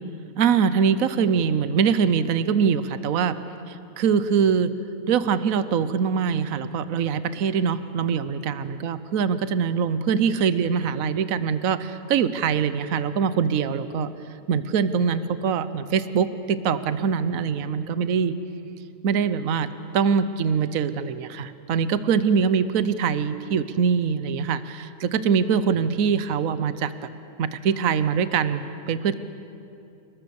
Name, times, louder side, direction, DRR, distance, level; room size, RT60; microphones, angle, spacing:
voice 1, 0.4-3.4 3.7-4.7 5.1-14.1 14.5-18.4 19.0-19.7 19.9-26.9 27.4-28.6 28.9-29.1, right 6 dB, 65° right, 13 dB, 1.3 m, -23 dB
29.5 x 20.0 x 7.1 m, 2.8 s
omnidirectional pair, 1.6 m